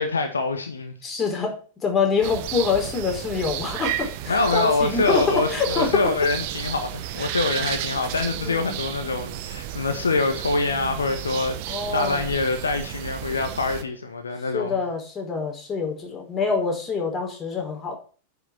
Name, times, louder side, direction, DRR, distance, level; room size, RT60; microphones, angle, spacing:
voice 1, 0.0-0.9 4.3-14.8, left 3 dB, 75° left, 1.6 m, -25 dB
voice 2, 1.0-6.0 7.3-7.4 8.4-8.8 11.7-12.3 14.5-17.9, left 5 dB, 20° left, 5.0 m, -26 dB
sound 1, 2.2-13.8, right 12 dB, 45° right, 1.2 m, -33 dB
9.8 x 7.0 x 8.5 m
figure-of-eight pair, 90°, 0 cm